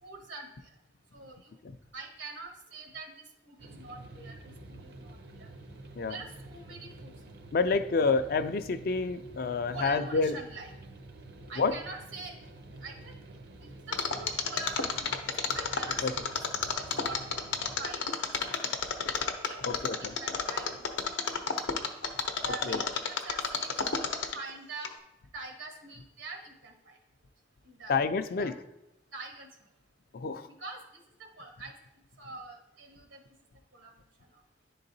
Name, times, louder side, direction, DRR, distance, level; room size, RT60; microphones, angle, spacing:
voice 1, 0.0-0.7 1.1-1.5 1.9-5.5 6.1-7.4 9.7-10.7 11.5-12.3 12.8-13.2 13.6-15.1 15.5-17.2 17.8-18.9 19.5-21.5 22.4-24.9 25.3-27.0 27.6-27.9 28.3-28.6 29.1-29.5 30.4-31.7 32.2-33.2 33.7-33.9 34.2-34.4, right 3 dB, 90° right, 2 dB, 1.3 m, -45 dB
sound 1, 3.6-17.8, right 2 dB, 55° right, 0.6 m, -49 dB
voice 2, 7.5-10.3 11.6-11.7 16.0-16.1 19.7-20.1 22.7-22.8 27.9-28.5 30.1-30.5, left 4 dB, 50° left, 11 dB, 0.4 m, -28 dB
Mechanisms, 13.9-24.5 24.8-24.9, left 6 dB, 85° left, 0.7 m, -30 dB
10.5 x 3.8 x 2.7 m, 0.90 s
head